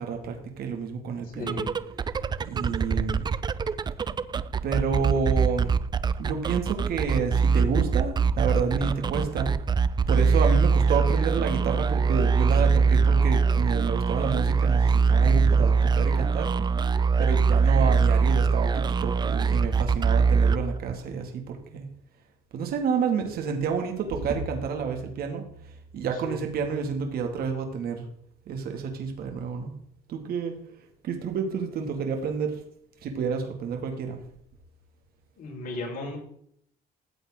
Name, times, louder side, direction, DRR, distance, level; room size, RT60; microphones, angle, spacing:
voice 1, 0.0-1.6 2.5-3.2 4.6-5.7 6.2-9.5 10.1-16.5 17.2-21.9 22.5-25.4 25.9-28.0 28.5-29.7 30.1-30.5 31.0-32.6 33.0-34.2, right 6 dB, 65° right, 4 dB, 2.3 m, -29 dB
voice 2, 1.2-1.7 26.1-26.4 35.4-36.2, left 2 dB, 55° left, 0 dB, 4.9 m, -36 dB
sound 1, 1.4-21.1, right 5 dB, 25° right, 0.5 m, -23 dB
14.5 x 8.3 x 3.8 m, 0.67 s
cardioid pair, 110°, 17 cm